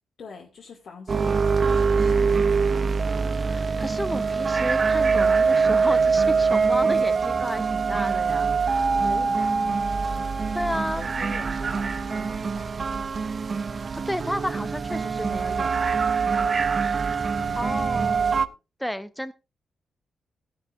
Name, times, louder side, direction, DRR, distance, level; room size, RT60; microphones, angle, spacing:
voice 1, 0.2-2.3 8.8-9.8 10.2-12.9 16.4-16.8 17.1-18.5, left 5 dB, 60° left, -2 dB, 2.5 m, -44 dB
sound 1, 1.1-18.5, right 5 dB, 35° right, 0.6 m, -23 dB
voice 2, 3.4-8.8 10.5-11.0 13.7-16.0 17.6-18.3 18.8-19.3, equal, ahead, 12 dB, 0.7 m, -32 dB
17.0 x 10.5 x 2.6 m, 0.29 s
wide cardioid pair, 155°, 0 cm